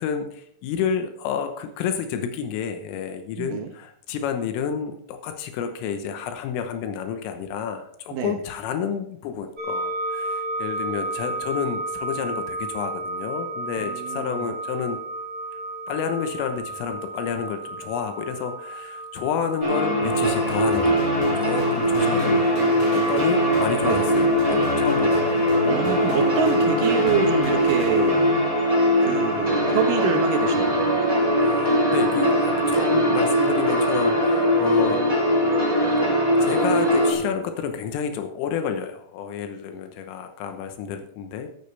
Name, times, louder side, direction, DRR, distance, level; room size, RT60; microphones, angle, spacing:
voice 1, 0.0-15.0 15.9-22.6 22.9-25.3 31.4-35.0 36.4-41.5, left 7 dB, 85° left, 6 dB, 3.7 m, -30 dB
voice 2, 3.4-3.7 8.1-8.4 13.8-14.5 23.8-24.0 25.6-28.2 29.0-30.9, right 7 dB, 80° right, 4 dB, 1.9 m, -26 dB
sound 1, 9.6-23.8, right 2 dB, 15° right, 3.0 m, -33 dB
sound 2, 19.6-37.1, equal, 10° left, 2.0 m, -21 dB
sound 3, 20.2-28.6, equal, 35° left, 5.0 m, -35 dB
13.5 x 12.5 x 3.4 m, 0.67 s
omnidirectional pair, 5.7 m